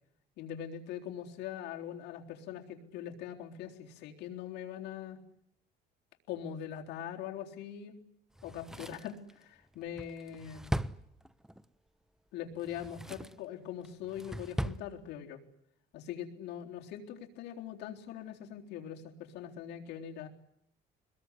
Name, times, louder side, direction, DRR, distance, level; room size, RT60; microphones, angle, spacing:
voice 1, 0.4-5.2 6.3-8.0 8.4-10.8 12.3-15.4 15.9-20.3, left 9 dB, 85° left, 2 dB, 3.9 m, -42 dB
Drawer open or close, 8.4-11.7 12.5-13.5 13.8-14.9 15.2-15.3, right 1 dB, 5° right, 1.0 m, -39 dB
23.5 x 21.5 x 9.9 m, 0.74 s
cardioid pair, 110°, 17 cm